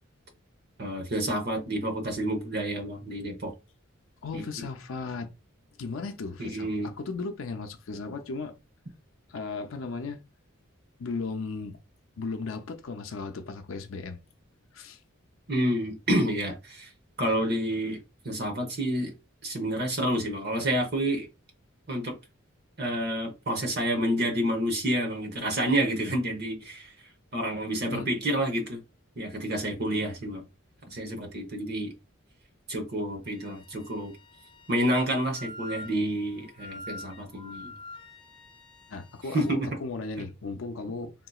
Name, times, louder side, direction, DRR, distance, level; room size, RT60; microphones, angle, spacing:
voice 1, 0.8-3.5 4.3-4.4 6.4-6.9 15.5-16.9 17.2-18.0 18.2-19.1 19.4-21.3 21.9-22.1 22.8-26.9 27.3-28.8 29.2-30.4 30.9-31.9 32.7-34.1 34.7-37.7 39.3-39.7, right 1 dB, 50° right, 1.0 m, -29 dB
voice 2, 4.2-5.3 5.8-8.6 9.3-10.2 11.0-11.8 12.2-14.2 14.7-15.0 27.9-28.1 38.9-41.1, left 4 dB, 80° left, 0.5 m, -36 dB
Wind instrument woodwind instrument, 33.3-39.6, left 2 dB, 25° left, 0.5 m, -46 dB
3.7 x 2.8 x 2.3 m
head